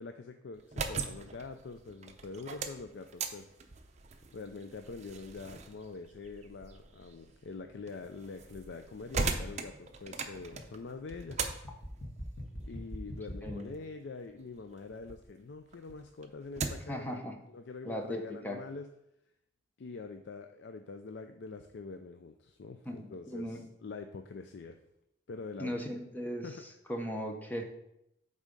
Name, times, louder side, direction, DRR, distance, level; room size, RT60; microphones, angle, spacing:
voice 1, 0.0-3.5 4.3-11.4 12.6-18.9 19.8-24.8 25.3-25.8 26.4-26.6, left 4 dB, 65° left, 6 dB, 0.4 m, -45 dB
sound 1, 0.5-15.2 15.6-17.0, right 4 dB, 35° right, 0.6 m, -41 dB
sound 2, 6.2-13.5, equal, 85° left, 1.7 m, -45 dB
voice 2, 13.4-13.7 16.9-17.4 17.8-18.6 22.9-23.6 25.6-26.5 26.9-27.6, equal, 10° left, 3 dB, 0.8 m, -37 dB
8.2 x 3.7 x 5.1 m, 0.80 s
head